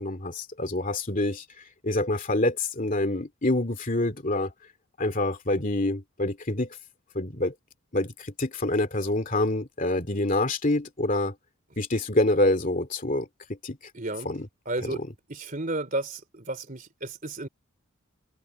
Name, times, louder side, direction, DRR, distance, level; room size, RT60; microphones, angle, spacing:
voice 1, 0.0-1.4 1.8-4.5 5.0-6.7 7.1-7.5 7.9-11.3 11.8-13.3 13.6-13.8 14.2-14.5 14.8-14.9, left 2 dB, 35° left, 2.5 m, -26 dB
voice 2, 13.9-14.3 14.6-15.0 15.3-17.5, right 2 dB, 35° right, 3.2 m, -32 dB
head